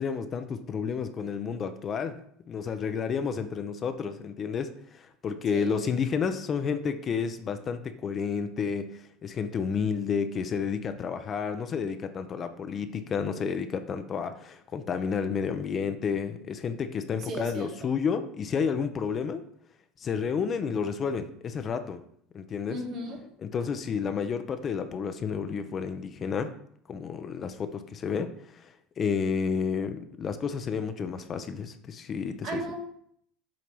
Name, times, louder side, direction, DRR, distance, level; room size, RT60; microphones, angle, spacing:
voice 1, 0.0-2.2 2.5-19.4 20.0-22.0 22.3-22.8 23.4-26.5 26.9-28.7 29.0-32.6, left 6 dB, 40° left, 9 dB, 0.6 m, -31 dB
voice 2, 17.2-17.9 22.7-23.2 32.4-32.7, right 2 dB, 55° right, 0 dB, 2.0 m, -36 dB
7.7 x 2.9 x 5.2 m, 0.67 s
supercardioid pair, 90°, 0 cm